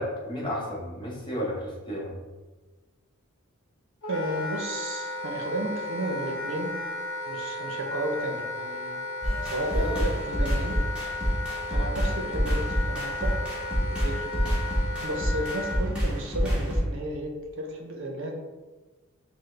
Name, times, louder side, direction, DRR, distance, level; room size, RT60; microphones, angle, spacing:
voice 1, 0.0-2.2, equal, 25° left, -3 dB, 0.8 m, -32 dB
Wind instrument woodwind instrument, 4.0-15.8, left 2 dB, 85° left, 0.8 m, -34 dB
voice 2, 4.1-6.8 7.3-9.0 9.4-10.7 11.7-13.4 13.8-14.3 15.0-17.3 17.6-18.3, right 1 dB, 65° right, 2 dB, 0.6 m, -33 dB
sound 1, 9.2-16.8, equal, 5° right, 1.1 m, -28 dB
5.9 x 2.0 x 3.2 m, 1.2 s
head